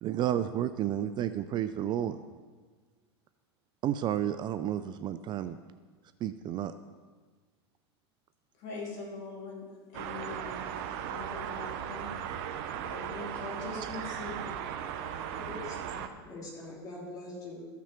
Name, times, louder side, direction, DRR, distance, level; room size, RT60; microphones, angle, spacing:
voice 1, 0.0-2.2 3.8-5.6 6.2-6.7, right 11 dB, 30° right, 12 dB, 0.3 m, -31 dB
voice 2, 8.6-10.6 11.1-12.1 12.8-15.5, left 3 dB, 50° left, -1 dB, 2.8 m, -43 dB
sound 1, 9.9-16.1, right 9 dB, 60° right, 0.8 m, -37 dB
voice 3, 15.3-17.7, left 2 dB, 25° left, -4 dB, 3.0 m, -43 dB
14.0 x 5.9 x 4.4 m, 1.4 s
hypercardioid pair, 110°, 14 cm